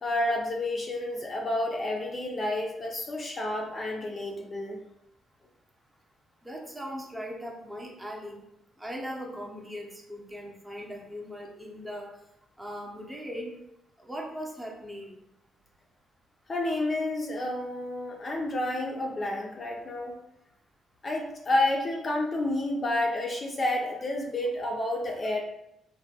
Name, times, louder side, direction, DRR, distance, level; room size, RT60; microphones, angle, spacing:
voice 1, 0.0-4.8 16.5-20.1 21.0-25.4, left 1 dB, 35° left, 0 dB, 0.5 m, -30 dB
voice 2, 6.4-8.4 8.8-12.1 12.6-13.5 14.0-15.2, equal, 10° right, -1 dB, 0.7 m, -39 dB
3.2 x 2.2 x 2.7 m, 0.83 s
cardioid pair, 90°, 0 cm